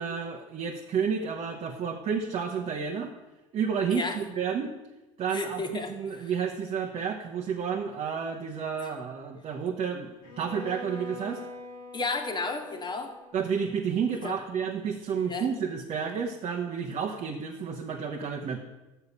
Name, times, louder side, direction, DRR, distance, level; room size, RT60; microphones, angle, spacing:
voice 1, 0.0-3.1 3.5-4.7 5.2-11.4 13.3-18.6, right 6 dB, 35° right, 2 dB, 0.9 m, -31 dB
voice 2, 5.3-6.3 8.8-8.9 11.9-13.1 14.2-14.4 15.2-15.4, left 3 dB, 25° left, 5 dB, 1.5 m, -33 dB
Bowed string instrument, 10.2-14.2, left 2 dB, 85° left, 1.7 m, -44 dB
6.7 x 6.5 x 7.0 m, 1.1 s
hypercardioid pair, 80°, 18 cm